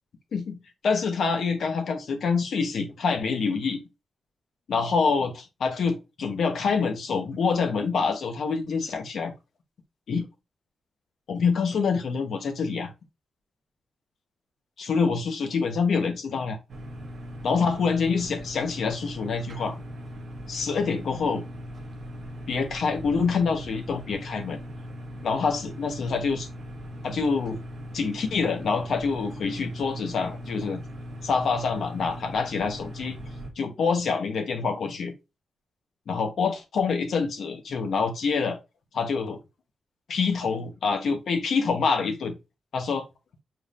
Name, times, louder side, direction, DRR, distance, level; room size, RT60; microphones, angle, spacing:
voice 1, 0.8-3.8 4.7-9.3 10.1-10.3 11.3-12.9 14.8-16.6 17.4-19.7 20.5-21.4 22.5-24.6 25.2-26.5 27.0-27.6 27.9-30.8 31.2-33.2 33.6-35.1 36.1-38.6 38.9-39.4 40.1-42.3 42.7-43.0, left 5 dB, 65° left, 1.1 m, -26 dB
sound 1, 16.7-33.5, equal, 50° right, 1.0 m, -39 dB
4.8 x 3.5 x 2.5 m
wide cardioid pair, 165°, 0 cm